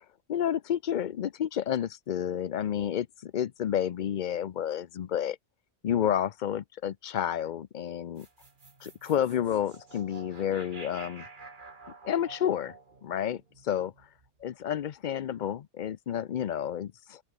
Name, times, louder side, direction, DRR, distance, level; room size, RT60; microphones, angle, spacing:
voice 1, 0.3-5.4 5.8-8.3 8.8-11.2 12.0-12.7 13.0-13.9 14.4-17.2, left 9 dB, 55° left, 0.5 m, -30 dB
sound 1, 8.2-14.5, right 3 dB, 40° right, 2.1 m, -49 dB
open air
omnidirectional pair, 1.3 m